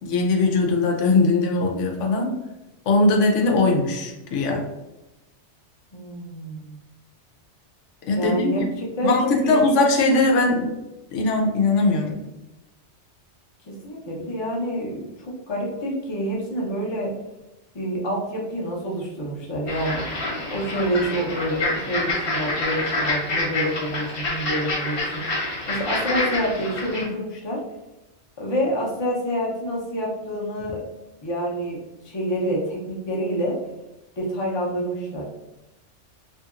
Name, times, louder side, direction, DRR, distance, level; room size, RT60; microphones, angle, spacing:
voice 1, 0.0-2.4 2.9-4.7 8.1-8.7 9.0-10.8 11.1-12.2, left 3 dB, 90° left, 1 dB, 0.9 m, -20 dB
voice 2, 5.9-6.8 8.1-9.6 13.7-17.1 17.7-20.0 20.5-27.6 28.4-30.8 31.2-33.6 34.2-35.3, equal, 30° left, -3 dB, 0.6 m, -27 dB
sound 1, 19.7-27.0, left 2 dB, 55° left, 1.1 m, -27 dB
2.8 x 2.7 x 2.4 m, 0.98 s
omnidirectional pair, 1.2 m